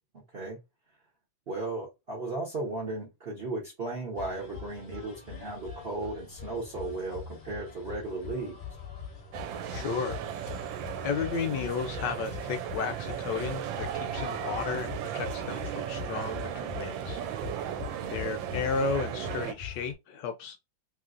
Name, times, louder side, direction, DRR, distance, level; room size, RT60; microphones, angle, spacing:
voice 1, 0.1-0.6 1.5-8.6 17.9-18.2, right 2 dB, 50° right, 0.7 m, -36 dB
sound 1, 4.2-19.9, left 6 dB, 50° left, 0.6 m, -43 dB
sound 2, 9.3-19.5, right 10 dB, 80° right, 1.3 m, -36 dB
voice 2, 9.7-10.7 11.0-17.6 18.1-20.6, left 5 dB, 75° left, 1.1 m, -34 dB
3.0 x 3.0 x 2.4 m
omnidirectional pair, 2.1 m